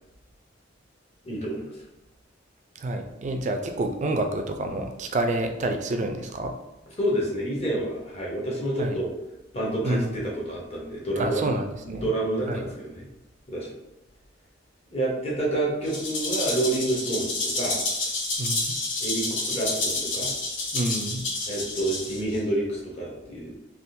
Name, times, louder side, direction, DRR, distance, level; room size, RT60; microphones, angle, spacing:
voice 1, 1.2-1.7 7.0-9.1 9.5-11.4 11.8-13.1 13.5-13.7 14.9-17.8 19.0-20.3 21.5-23.5, right 1 dB, 35° left, -3 dB, 0.9 m, -28 dB
voice 2, 2.8-6.5 8.8-9.0 9.8-10.1 11.2-12.1 12.5-12.6 18.4-18.8 20.7-21.2, right 2 dB, 40° right, 5 dB, 0.3 m, -28 dB
Rattle (instrument), 15.8-22.4, left 2 dB, 85° left, 0.8 m, -29 dB
3.6 x 2.4 x 2.6 m, 0.95 s
head